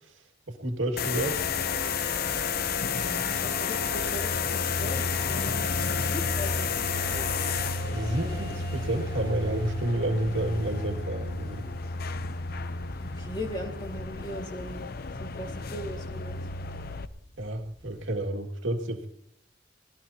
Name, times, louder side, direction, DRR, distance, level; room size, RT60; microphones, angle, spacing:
voice 1, 0.5-1.8 7.9-11.6 17.4-19.1, right 1 dB, 80° right, 4 dB, 2.1 m, -30 dB
sound 1, 1.0-17.1, left 5 dB, 50° left, 0.6 m, -31 dB
sound 2, 1.3-18.2, left 1 dB, 70° left, 3.9 m, -55 dB
sound 3, 1.5-14.4, right 5 dB, 25° right, 2.3 m, -45 dB
voice 2, 3.0-7.3 13.0-14.9 15.2-16.5, equal, 25° left, 2 dB, 2.1 m, -39 dB
24.0 x 18.0 x 2.8 m, 0.78 s
head